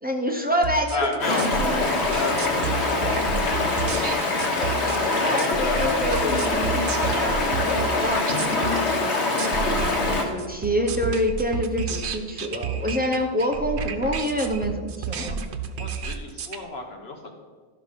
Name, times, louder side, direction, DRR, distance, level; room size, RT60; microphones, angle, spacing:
voice 1, 0.0-2.0 4.5-9.1 9.6-15.4, equal, 10° right, 2 dB, 0.9 m, -27 dB
sound 1, 0.6-16.6, right 6 dB, 80° right, 1.0 m, -31 dB
voice 2, 0.9-1.4 2.1-3.8 5.6-5.9 15.8-17.3, left 3 dB, 65° left, 3 dB, 1.4 m, -32 dB
Stream, 1.2-10.2, left 3 dB, 85° left, 1.6 m, -24 dB
13.0 x 5.8 x 5.3 m, 1.4 s
omnidirectional pair, 1.1 m